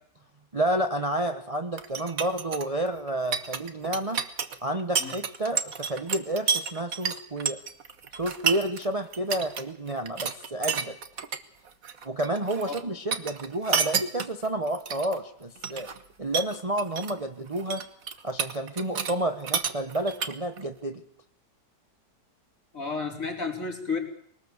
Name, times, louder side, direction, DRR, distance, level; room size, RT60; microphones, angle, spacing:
voice 1, 0.5-4.2 4.6-7.6 8.2-11.0 12.0-15.9 16.2-17.8 18.2-21.0, right 1 dB, 25° right, 7 dB, 1.1 m, -30 dB
sound 1, 1.8-8.9 9.1-9.6 9.9-11.4 11.7-12.8 13.1-15.2 15.6-16.0 16.3-17.2 17.5-19.2 19.4-20.6, right 6 dB, 55° right, 1.7 m, -30 dB
voice 2, 22.7-24.0, left 4 dB, 50° left, 2 dB, 4.7 m, -31 dB
22.5 x 19.0 x 8.2 m, 0.68 s
omnidirectional pair, 1.9 m